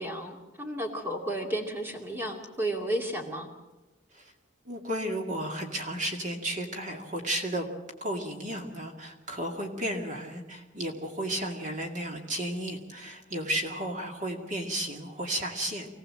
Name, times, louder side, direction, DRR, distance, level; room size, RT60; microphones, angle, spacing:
voice 1, 0.0-3.5, right 1 dB, 10° right, 2 dB, 2.5 m, -33 dB
voice 2, 4.7-7.7 8.0-15.9, right 1 dB, 40° right, 2 dB, 2.3 m, -33 dB
25.5 x 17.5 x 7.8 m, 1.1 s
head